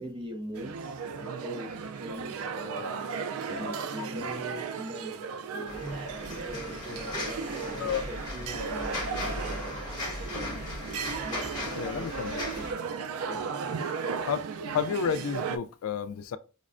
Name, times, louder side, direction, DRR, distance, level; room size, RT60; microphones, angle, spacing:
voice 1, 0.0-3.1 3.5-5.8 6.3-10.4 11.2-12.9 13.2-13.5, equal, 25° right, 0.5 m, -42 dB
sound 1, 0.5-15.6, right 5 dB, 85° right, 0.3 m, -36 dB
sound 2, 5.7-12.7, left 1 dB, 20° left, 1.0 m, -37 dB
voice 2, 11.8-12.5 14.2-16.4, left 6 dB, 80° left, 0.3 m, -32 dB
5.1 x 2.1 x 2.4 m
head